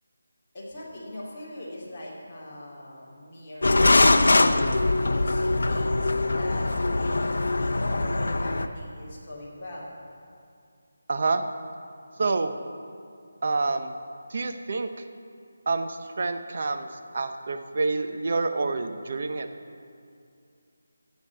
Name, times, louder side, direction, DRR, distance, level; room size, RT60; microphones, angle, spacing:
voice 1, 0.5-4.0 5.1-7.2 7.6-10.0, left 1 dB, 20° left, -9 dB, 2.8 m, -41 dB
sound 1, 3.6-8.7, left 2 dB, 75° left, 0.6 m, -22 dB
voice 2, 11.1-11.4 12.2-12.6 13.4-13.9 14.3-15.0 15.7-19.5, right 3 dB, 40° right, 8 dB, 0.7 m, -28 dB
15.0 x 5.3 x 8.1 m, 2.4 s
figure-of-eight pair, 175°, 0 cm